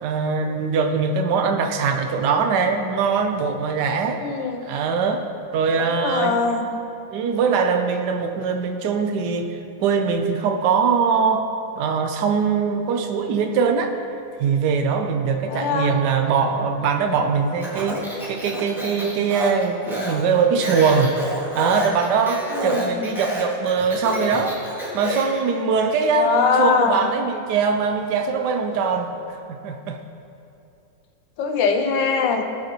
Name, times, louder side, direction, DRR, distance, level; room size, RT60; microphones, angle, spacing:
voice 1, 0.0-4.2 4.6-5.2 5.5-6.4 7.1-11.4 11.8-13.9 14.4-21.2 21.5-24.6 24.9-29.1 29.6-30.0, right 5 dB, 65° right, 5 dB, 1.2 m, -22 dB
voice 2, 4.2-4.7 6.0-6.6 15.5-16.0 22.5-23.0 26.1-27.0 31.4-32.4, left 5 dB, 65° left, 5 dB, 1.3 m, -22 dB
Speech, 17.6-25.4, equal, ahead, 1.7 m, -30 dB
18.5 x 6.5 x 3.0 m, 2.6 s
omnidirectional pair, 2.4 m